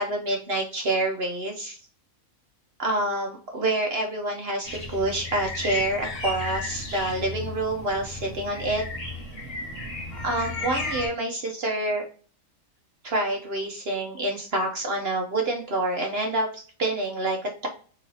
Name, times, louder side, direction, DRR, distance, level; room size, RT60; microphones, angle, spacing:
voice 1, 0.0-1.8 2.8-8.8 10.2-12.0 13.0-17.7, right 2 dB, 50° right, 1 dB, 1.0 m, -27 dB
sound 1, 4.6-11.1, left 3 dB, 55° left, 1.7 m, -34 dB
3.9 x 2.7 x 4.6 m, 0.40 s
omnidirectional pair, 1.4 m